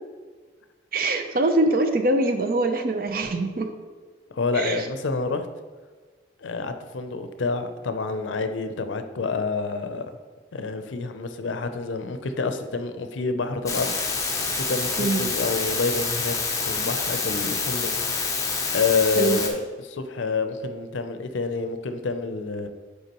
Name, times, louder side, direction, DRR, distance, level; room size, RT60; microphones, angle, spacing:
voice 1, 0.9-3.7 4.6-4.8 15.0-15.2 19.2-19.4, right 2 dB, 50° right, 7 dB, 0.5 m, -23 dB
voice 2, 4.3-5.5 6.4-10.1 10.5-14.2 14.5-16.3 16.7-17.9 18.7-22.7, left 4 dB, 80° left, 8 dB, 0.5 m, -28 dB
sound 1, 13.7-19.5, left 4 dB, 15° left, 0.6 m, -27 dB
8.1 x 4.7 x 3.0 m, 1.5 s
head